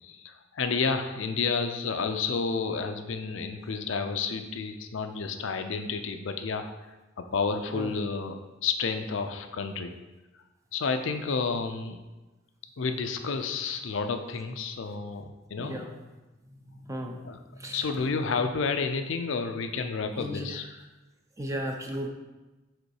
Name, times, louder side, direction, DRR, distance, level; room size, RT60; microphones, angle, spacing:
voice 1, 0.0-6.7 7.2-10.0 10.7-12.0 12.8-15.8 17.2-17.4 17.7-20.6, left 5 dB, 85° left, 7 dB, 0.5 m, -30 dB
voice 2, 15.6-15.9 16.7-17.2 17.5-18.1 20.2-20.6 21.4-22.1, equal, 15° right, 2 dB, 0.6 m, -35 dB
5.2 x 3.8 x 4.8 m, 1.1 s
head